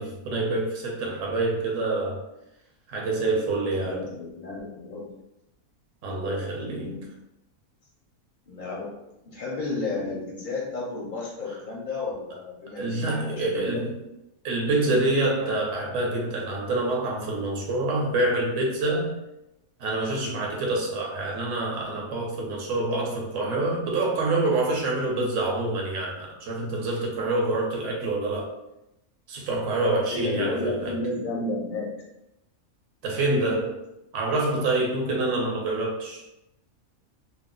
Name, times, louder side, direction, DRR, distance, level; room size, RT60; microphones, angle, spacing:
voice 1, 0.0-2.2 2.9-4.0 6.0-7.0 12.8-14.0 14.4-19.1 19.8-28.5 29.3-30.9 33.0-33.7 34.1-36.2, right 2 dB, 60° right, -1 dB, 1.0 m, -26 dB
voice 2, 3.7-5.1 6.6-7.1 8.5-9.0 9.2-13.8 30.1-32.0, left 2 dB, 55° left, -4 dB, 0.5 m, -32 dB
2.6 x 2.0 x 3.7 m, 0.89 s
omnidirectional pair, 1.5 m